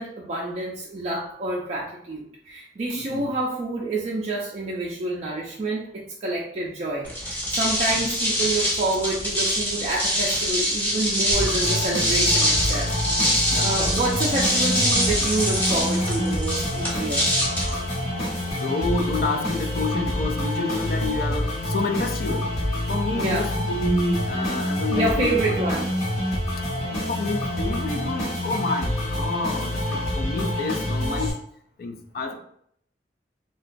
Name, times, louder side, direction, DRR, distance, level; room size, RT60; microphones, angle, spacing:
voice 1, 0.0-12.9 13.3-17.2 23.1-23.5 24.9-25.9, right 2 dB, 35° right, -5 dB, 0.4 m, -28 dB
voice 2, 2.9-3.3 8.0-8.1 13.5-13.7 17.6-17.8 18.5-22.5 22.9-25.4 26.9-31.4 31.8-32.3, left 2 dB, 55° left, 5 dB, 0.4 m, -28 dB
sound 1, 7.0-18.5, equal, 10° left, 0.7 m, -24 dB
sound 2, 11.3-31.3, left 1 dB, 40° left, 1.0 m, -27 dB
2.9 x 2.2 x 2.5 m, 0.68 s
head